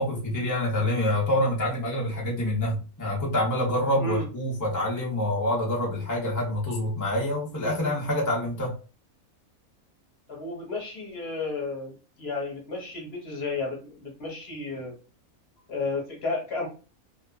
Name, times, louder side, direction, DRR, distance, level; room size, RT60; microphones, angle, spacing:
voice 1, 0.0-8.7, left 1 dB, 20° left, -3 dB, 0.5 m, -26 dB
voice 2, 10.3-15.0 15.7-16.7, left 3 dB, 45° left, -1 dB, 1.2 m, -32 dB
2.7 x 2.4 x 2.3 m, 0.33 s
omnidirectional pair, 1.5 m